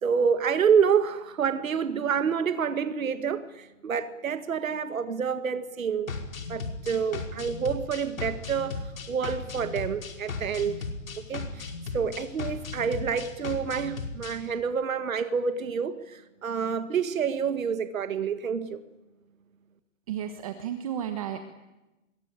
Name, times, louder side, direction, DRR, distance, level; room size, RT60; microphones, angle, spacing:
voice 1, 0.0-6.1 6.5-10.8 11.2-18.8, right 6 dB, 80° right, 1.9 m, -28 dB
sound 1, 6.1-14.4, left 4 dB, 80° left, 5.4 m, -36 dB
voice 2, 20.1-21.4, right 9 dB, 25° right, 1.3 m, -33 dB
25.5 x 22.5 x 8.9 m
hypercardioid pair, 170°, 40 cm